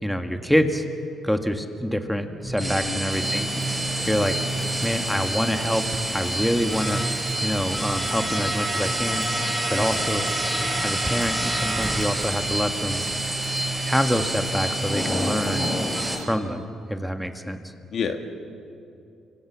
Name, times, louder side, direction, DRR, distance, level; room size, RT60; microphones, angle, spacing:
voice 1, 0.0-0.8 1.2-3.5 4.1-4.4 4.8-5.8 6.1-7.0 7.4-9.3 9.7-10.2 10.8-13.0 13.8-15.6 16.2-17.7, equal, 5° left, 6 dB, 1.7 m, -26 dB
sound 1, 2.4-16.1, right 2 dB, 15° right, 4.6 m, -27 dB
voice 2, 2.6-3.0 9.7-10.0 17.9-18.3, left 6 dB, 65° left, 6 dB, 2.0 m, -30 dB
sound 2, 3.1-16.2, left 2 dB, 40° left, 3.4 m, -36 dB
26.0 x 24.5 x 7.3 m, 2.6 s
cardioid pair, 90°, 0 cm